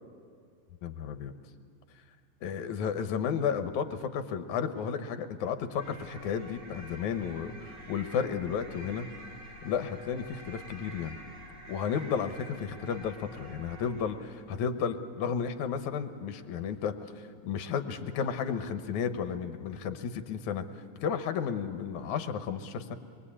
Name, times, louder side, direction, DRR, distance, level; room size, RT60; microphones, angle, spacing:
voice 1, 0.8-1.3 2.4-9.1 9.6-11.2 11.7-17.0 17.4-20.7 21.0-23.0, left 7 dB, 80° left, 9 dB, 2.4 m, -33 dB
sound 1, 5.7-14.3, equal, 80° right, 5.1 m, -48 dB
26.0 x 22.5 x 8.6 m, 2.2 s
omnidirectional pair, 3.5 m